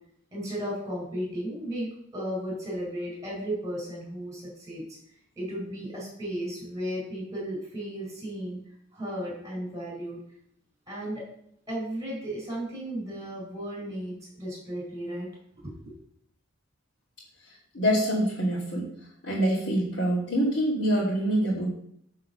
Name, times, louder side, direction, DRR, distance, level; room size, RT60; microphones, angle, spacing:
voice 1, 0.3-1.9 2.1-5.0 5.4-8.6 8.9-10.2 10.9-11.3 11.7-15.3 15.5-15.9, equal, 15° right, -4 dB, 4.3 m, -34 dB
voice 2, 17.7-18.8 19.2-21.7, right 1 dB, 75° left, -9 dB, 3.0 m, -25 dB
9.5 x 4.7 x 6.7 m, 0.68 s
head